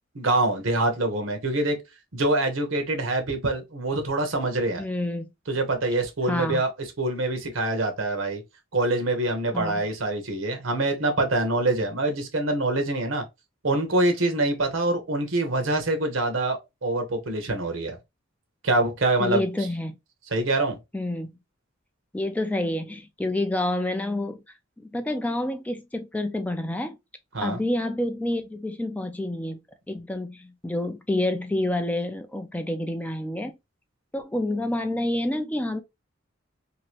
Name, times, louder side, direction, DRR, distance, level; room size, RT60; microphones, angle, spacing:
voice 1, 0.1-1.8 2.1-4.8 5.5-6.7 7.0-8.4 8.7-13.2 13.6-18.0 18.6-19.4 20.3-20.8 27.3-27.6, right 2 dB, 80° right, 0.9 m, -25 dB
voice 2, 4.8-5.3 6.3-6.6 9.5-9.8 19.2-20.0 20.9-21.3 22.1-24.4 24.8-27.0 27.4-29.6 29.9-33.6 34.1-35.8, left 1 dB, 10° left, 0.3 m, -28 dB
2.9 x 2.4 x 2.9 m
head